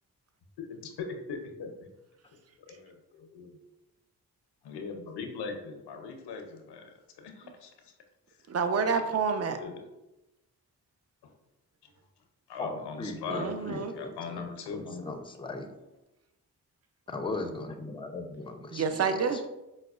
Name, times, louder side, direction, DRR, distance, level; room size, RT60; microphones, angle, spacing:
voice 1, 0.6-1.7 2.7-3.5 4.6-7.9 9.5-9.9 11.2-11.3 12.5-13.5 13.9-15.1, left 5 dB, 85° left, 5 dB, 0.5 m, -40 dB
voice 2, 8.5-9.6 13.3-13.9 18.7-19.4, right 5 dB, 40° right, 8 dB, 0.5 m, -28 dB
voice 3, 12.6-14.4 14.7-15.7 17.1-19.5, left 2 dB, 15° left, 6 dB, 0.4 m, -38 dB
4.7 x 2.1 x 2.3 m, 0.96 s
supercardioid pair, 40°, 40 cm